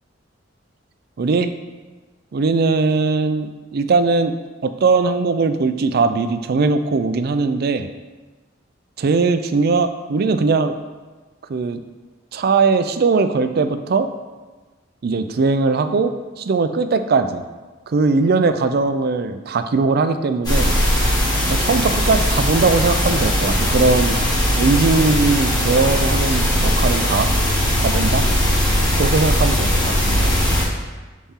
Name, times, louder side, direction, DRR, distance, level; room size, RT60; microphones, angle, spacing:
voice 1, 1.2-1.5 2.3-4.4 4.6-7.9 9.0-10.8 11.5-11.8 12.3-14.1 15.0-17.4 17.9-20.8 21.5-24.2 24.6-27.3 27.8-28.3 29.0-30.3, right 4 dB, 55° right, 10 dB, 0.4 m, -19 dB
sound 1, 20.4-30.6, equal, 20° left, 1.4 m, -19 dB
7.1 x 4.2 x 3.6 m, 1.3 s
head